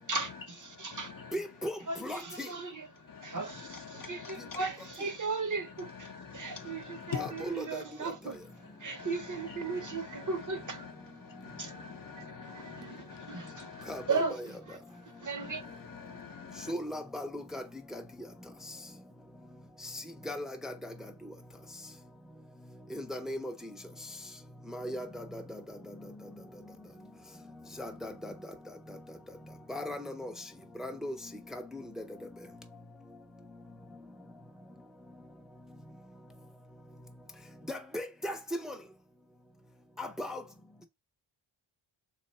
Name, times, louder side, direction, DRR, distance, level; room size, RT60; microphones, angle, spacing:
voice 1, 0.0-1.1 1.9-2.9 3.2-8.4 8.8-10.8 11.6-11.7 12.2-14.8 15.2-15.6, right 4 dB, 40° right, 0.7 m, -37 dB
voice 2, 1.3-2.5 7.2-7.8 13.9-14.2 16.7-17.6 17.9-18.0 20.3-20.7 22.9-23.5 24.7-25.4 27.8-28.3 29.7-30.3 30.8-31.1 31.5-32.0 37.7-38.4 38.6-38.7 40.0-40.4, left 1 dB, ahead, 0.5 m, -37 dB
voice 3, 11.4-13.9 16.1-16.7, left 7 dB, 45° left, 0.6 m, -43 dB
3.5 x 3.2 x 4.1 m
wide cardioid pair, 135°, 49 cm